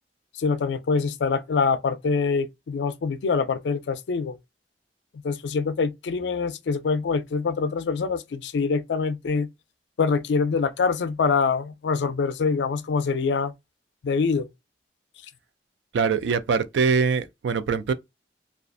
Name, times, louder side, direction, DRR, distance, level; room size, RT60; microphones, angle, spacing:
voice 1, 0.3-4.4 5.2-9.5 10.0-13.5 14.0-14.5, left 5 dB, 70° left, 0.4 m, -25 dB
voice 2, 15.9-17.9, right 5 dB, 80° right, 0.3 m, -23 dB
2.4 x 2.4 x 2.4 m
head